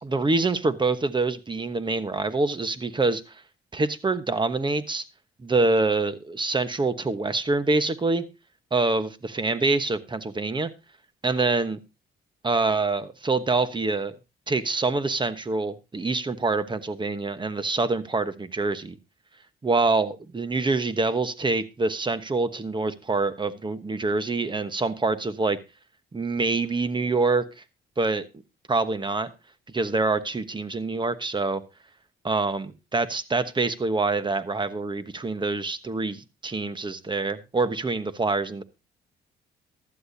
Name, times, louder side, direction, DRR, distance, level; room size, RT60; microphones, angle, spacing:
voice 1, 0.0-3.3 3.7-5.0 5.4-8.3 8.7-10.7 11.2-11.8 12.4-14.2 14.5-19.0 19.6-25.6 26.1-27.4 28.0-28.3 28.7-29.3 29.7-31.6 32.2-38.6, right 3 dB, 25° right, 12 dB, 1.1 m, -25 dB
15.0 x 12.0 x 2.8 m, 0.26 s
cardioid pair, 90°, 20 cm